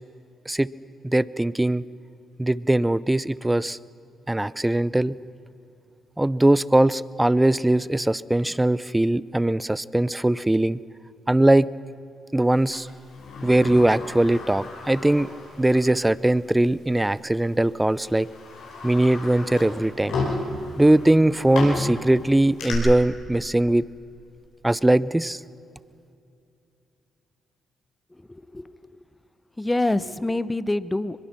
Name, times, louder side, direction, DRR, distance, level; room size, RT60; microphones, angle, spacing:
voice 1, 1.0-1.8 2.4-3.8 4.3-5.2 6.2-10.8 11.3-11.7 12.3-12.9 13.4-15.3 15.6-18.3 18.8-20.2 20.8-23.9 24.6-25.4, right 1 dB, 15° right, 20 dB, 0.6 m, -20 dB
Sliding door, 12.7-16.0 16.3-16.4 17.3-17.5 18.0-22.7, left 3 dB, 80° left, 5.2 m, -33 dB
voice 2, 28.2-29.0 29.6-31.2, left 2 dB, 15° left, 17 dB, 0.9 m, -27 dB
23.0 x 22.0 x 5.9 m, 2.7 s
hypercardioid pair, 50°, 0 cm